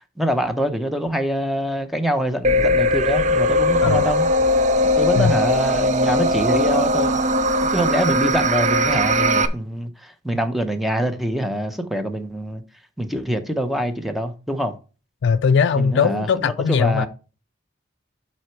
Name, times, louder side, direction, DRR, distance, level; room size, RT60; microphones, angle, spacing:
voice 1, 0.0-4.3 5.0-7.2 7.7-12.6 13.0-14.7 15.7-17.1, equal, ahead, 0.8 m, -24 dB
sound 1, 2.4-9.5, equal, 40° right, 0.6 m, -19 dB
voice 2, 15.2-17.1, left 6 dB, 65° left, 0.4 m, -19 dB
7.9 x 4.4 x 4.6 m
head